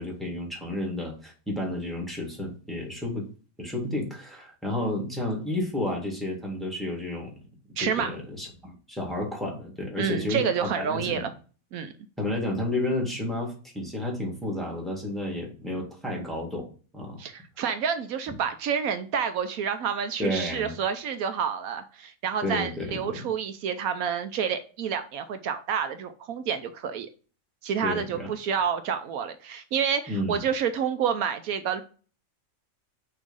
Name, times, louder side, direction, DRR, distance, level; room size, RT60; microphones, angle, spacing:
voice 1, 0.0-3.3 3.6-7.3 7.8-10.5 10.8-11.2 12.2-17.2 20.2-20.7 22.4-23.2 27.8-28.3 30.1-30.4, left 1 dB, ahead, -2 dB, 1.8 m, -31 dB
voice 2, 7.8-8.1 10.0-11.3 11.7-11.9 17.2-27.1 27.6-31.8, right 7 dB, 80° right, 9 dB, 1.1 m, -29 dB
6.1 x 3.1 x 5.3 m, 0.38 s
omnidirectional pair, 1.5 m